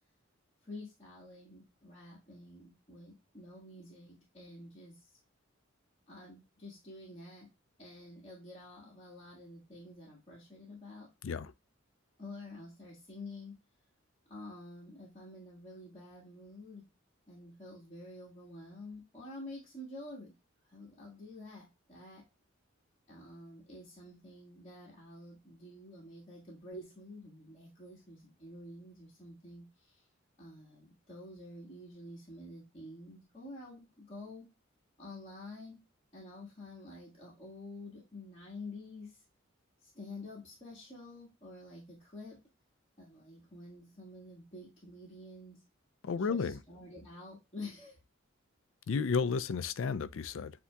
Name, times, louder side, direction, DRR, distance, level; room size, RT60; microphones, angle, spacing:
voice 1, 0.6-5.0 6.1-7.5 7.8-11.1 12.2-13.6 14.3-16.9 17.3-20.3 20.7-22.2 23.1-30.0 30.4-34.5 35.0-35.8 36.1-39.2 39.8-42.4 43.0-45.6 46.2-48.0, left 2 dB, 30° left, 1.5 m, -49 dB
voice 2, 46.0-46.6 48.9-50.5, left 5 dB, 70° left, 0.4 m, -32 dB
8.0 x 2.8 x 2.2 m
head